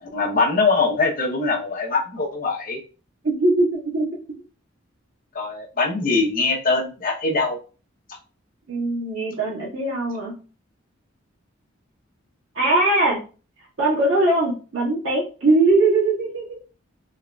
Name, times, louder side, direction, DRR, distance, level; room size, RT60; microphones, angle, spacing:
voice 1, 0.0-2.8 5.3-7.6, left 3 dB, 45° left, 0 dB, 0.8 m, -22 dB
voice 2, 3.2-4.1 8.7-10.3 12.5-13.2 13.8-16.6, right 2 dB, 85° right, -5 dB, 1.6 m, -20 dB
3.7 x 2.9 x 2.3 m, 0.35 s
head